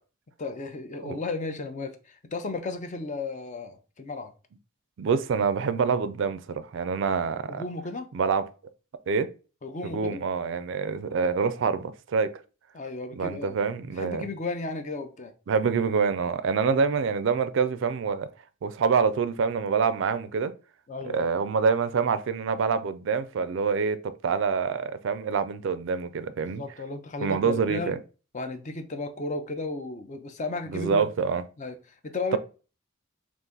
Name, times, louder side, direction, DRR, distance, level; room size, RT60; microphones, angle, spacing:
voice 1, 0.4-4.3 7.5-8.1 9.6-10.2 12.7-13.6 14.0-15.3 20.9-21.3 26.4-28.0 28.3-31.0 31.6-31.7 32.0-32.4, left 3 dB, 35° left, 0.5 m, -34 dB
voice 2, 5.0-7.6 8.1-8.5 9.1-9.3 9.8-12.3 13.2-14.3 15.5-18.3 18.6-20.5 21.0-26.6 27.2-28.0 30.7-31.4, right 5 dB, 65° right, 0.4 m, -26 dB
3.9 x 2.5 x 3.7 m
head